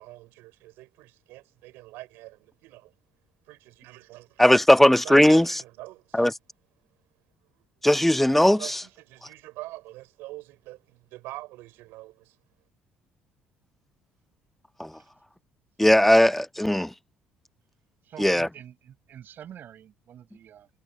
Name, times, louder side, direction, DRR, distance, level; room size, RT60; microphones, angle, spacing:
voice 1, 0.0-2.9 3.5-4.4 5.0-6.3 8.0-12.3, right 19 dB, 75° right, 6.1 m, -44 dB
voice 2, 4.4-5.6 6.1-6.3 7.8-8.8 14.8-14.9 15.8-16.9 18.2-18.5, left 1 dB, 5° left, 0.3 m, -18 dB
voice 3, 18.0-20.7, right 10 dB, 60° right, 6.5 m, -46 dB
hypercardioid pair, 65°, 4 cm